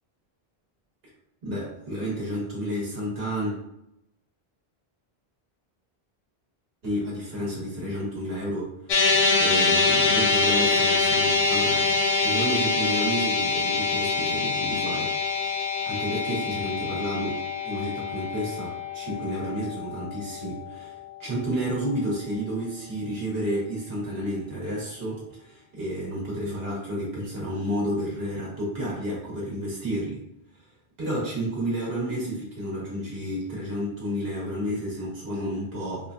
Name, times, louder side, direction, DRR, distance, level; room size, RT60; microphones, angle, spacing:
voice 1, 1.4-3.5 6.8-11.9 12.2-15.6 15.8-30.2 31.0-36.1, equal, 65° right, -6 dB, 1.5 m, -31 dB
sound 1, 8.9-21.3, left 4 dB, 75° left, 0.9 m, -25 dB
4.5 x 2.2 x 2.5 m, 0.83 s
omnidirectional pair, 1.1 m